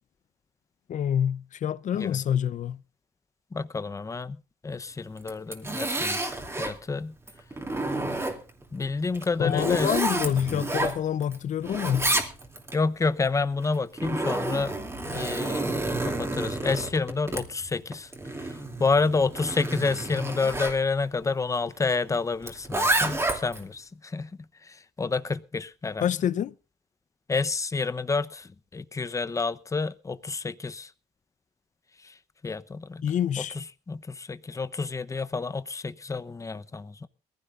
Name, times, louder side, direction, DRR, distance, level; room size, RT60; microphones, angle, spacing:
voice 1, 0.9-2.8 9.4-12.1 26.0-26.5 33.0-33.5, left 9 dB, 50° left, 0.7 m, -27 dB
voice 2, 3.5-4.4 4.6-7.1 8.7-9.9 10.2-10.3 12.7-14.7 15.1-18.1 18.4-24.3 24.6-26.1 27.3-30.9 32.0-32.1 32.4-33.0 33.5-37.1, left 4 dB, 20° left, 0.9 m, -29 dB
Zipper (clothing), 5.2-6.8 7.3-8.6 9.1-11.4 11.6-12.8 13.6-20.8 22.4-23.6, right 2 dB, 15° right, 2.8 m, -30 dB
22.0 x 15.5 x 2.6 m
cardioid pair, 110°, 17 cm